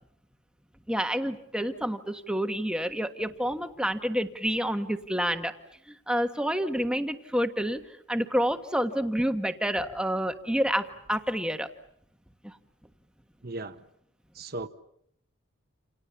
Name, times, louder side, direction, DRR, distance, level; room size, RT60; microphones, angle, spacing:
voice 1, 0.9-5.5 5.9-7.8 8.1-11.7 12.4-12.5, equal, 5° right, 7 dB, 1.5 m, -28 dB
voice 2, 13.4-13.8 14.3-14.7, right 2 dB, 45° right, 7 dB, 1.2 m, -36 dB
29.0 x 28.5 x 7.1 m, 0.72 s
head